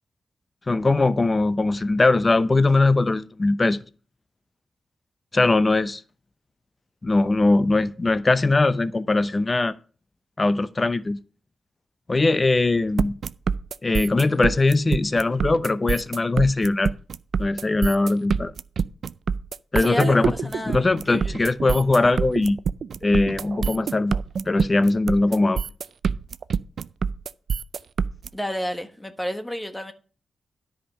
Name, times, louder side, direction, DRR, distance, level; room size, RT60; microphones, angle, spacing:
voice 1, 0.7-3.8 5.3-6.0 7.0-9.7 10.4-11.2 12.1-13.2 13.8-16.9 17.4-18.5 19.7-20.3 20.7-22.6 23.0-24.2 24.5-25.6, left 2 dB, 35° left, 0.8 m, -20 dB
sound 1, 13.0-28.3, right 6 dB, 70° right, 0.4 m, -26 dB
voice 2, 19.8-21.4 28.3-29.9, equal, 10° left, 1.3 m, -31 dB
10.0 x 5.2 x 6.5 m
cardioid pair, 60°, 0 cm